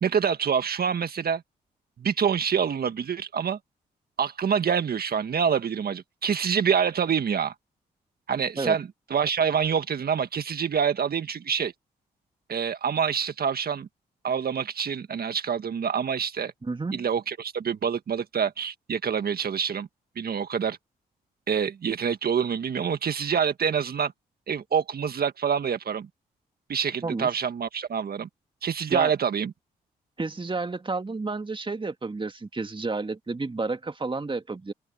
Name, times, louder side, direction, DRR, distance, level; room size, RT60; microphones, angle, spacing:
voice 1, 0.0-1.4 2.0-3.6 4.2-7.5 8.3-11.7 12.5-13.9 14.2-16.5 16.9-19.9 20.2-20.8 21.5-24.1 24.5-26.1 26.7-28.3 28.6-29.5, right 7 dB, 55° right, 1.7 m, -26 dB
voice 2, 16.6-17.0 27.0-27.3 28.9-29.1 30.2-34.7, right 3 dB, 25° right, 2.1 m, -31 dB
open air
hypercardioid pair, 45°, 19 cm